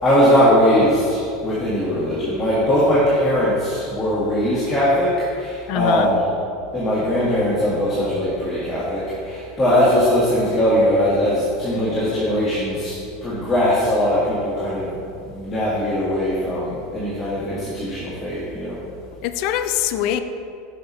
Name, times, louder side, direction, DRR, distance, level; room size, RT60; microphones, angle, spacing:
voice 1, 0.0-6.2 6.7-12.9 13.2-15.0 15.3-18.8, equal, 20° left, -9 dB, 1.7 m, -20 dB
voice 2, 5.7-6.1 19.2-20.2, left 10 dB, 50° left, 9 dB, 0.3 m, -23 dB
6.5 x 5.6 x 4.2 m, 2.6 s
figure-of-eight pair, 80°, 0 cm